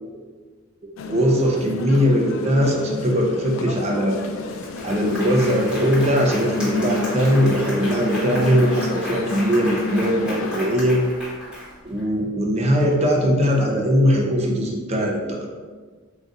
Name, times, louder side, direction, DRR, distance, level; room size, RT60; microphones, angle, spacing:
sound 1, 1.0-10.8, left 4 dB, 65° left, 0.3 m, -31 dB
voice 1, 1.1-4.2 4.8-11.0 11.8-15.5, equal, 30° right, 0 dB, 0.5 m, -20 dB
Applause, 4.1-4.2 4.5-12.0, left 1 dB, 5° right, 1.0 m, -34 dB
3.9 x 2.3 x 3.7 m, 1.4 s
head